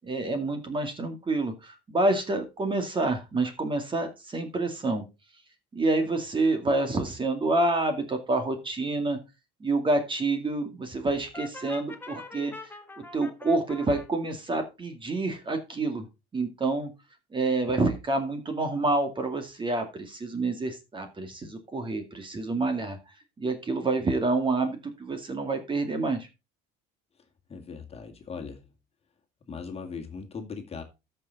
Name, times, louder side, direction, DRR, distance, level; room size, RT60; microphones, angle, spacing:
voice 1, 0.0-5.0 5.7-9.2 9.6-16.1 16.3-16.9 17.3-23.0 23.4-26.3, right 2 dB, 25° right, 2.2 m, -28 dB
Brass instrument, 11.3-14.1, left 3 dB, 10° left, 1.5 m, -43 dB
voice 2, 27.5-28.7 29.5-30.8, left 5 dB, 30° left, 2.2 m, -39 dB
13.5 x 6.0 x 4.0 m
cardioid pair, 120°, 21 cm